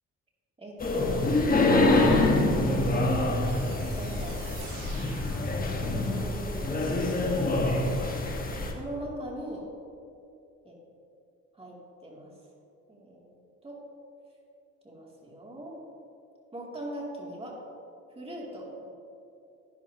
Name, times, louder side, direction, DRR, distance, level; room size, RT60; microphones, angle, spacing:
voice 1, 0.6-1.3 1.7-2.2 2.6-4.7 5.3-9.7 10.7-10.8 11.5-12.3 12.9-13.3 13.6-13.8 14.8-15.8 16.5-17.6 18.1-18.9, right 1 dB, 20° right, -3 dB, 2.4 m, -40 dB
sound 1, 0.8-8.7, left 2 dB, 30° left, 1.2 m, -25 dB
sound 2, 3.4-6.3, right 4 dB, 85° right, 2.0 m, -47 dB
11.0 x 10.5 x 2.8 m, 2.7 s
cardioid pair, 90°, 30 cm